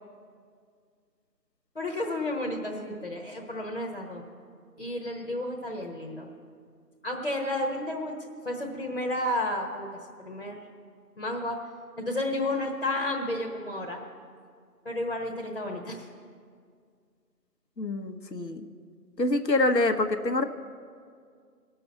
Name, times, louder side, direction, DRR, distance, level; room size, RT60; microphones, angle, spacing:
voice 1, 1.7-4.2 4.8-6.3 7.0-8.1 8.4-9.9 10.2-10.6 11.2-11.6 12.0-14.0 14.8-16.1, left 1 dB, 40° left, -1 dB, 1.2 m, -31 dB
voice 2, 17.8-18.6 19.2-20.4, left 2 dB, 85° left, 8 dB, 1.1 m, -25 dB
17.0 x 6.9 x 8.0 m, 2.1 s
figure-of-eight pair, 170°, 49 cm